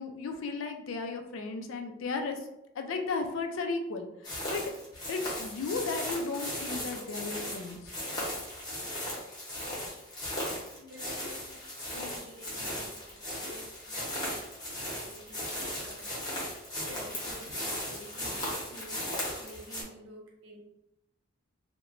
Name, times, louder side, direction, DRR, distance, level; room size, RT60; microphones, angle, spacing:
voice 1, 0.0-2.4 2.7-4.6 5.1-7.9, left 4 dB, 75° left, 5 dB, 0.4 m, -35 dB
sound 1, 4.2-19.8, left 1 dB, 20° left, 0.8 m, -37 dB
voice 2, 10.7-14.5 14.8-16.2 16.7-20.6, equal, 70° right, -2 dB, 0.8 m, -51 dB
2.9 x 2.1 x 2.4 m, 0.87 s
head